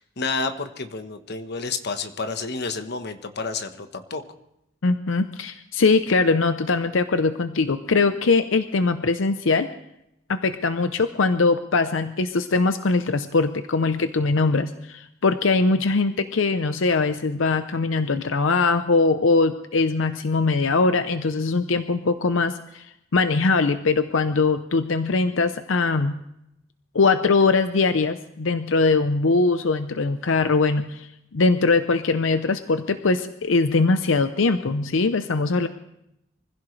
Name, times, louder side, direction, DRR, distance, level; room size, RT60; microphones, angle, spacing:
voice 1, 0.0-4.2, left 4 dB, 60° left, 8 dB, 1.2 m, -30 dB
voice 2, 4.8-9.7 10.3-26.2 26.9-35.7, left 3 dB, 85° left, 10 dB, 0.7 m, -21 dB
24.5 x 15.5 x 3.3 m, 0.82 s
head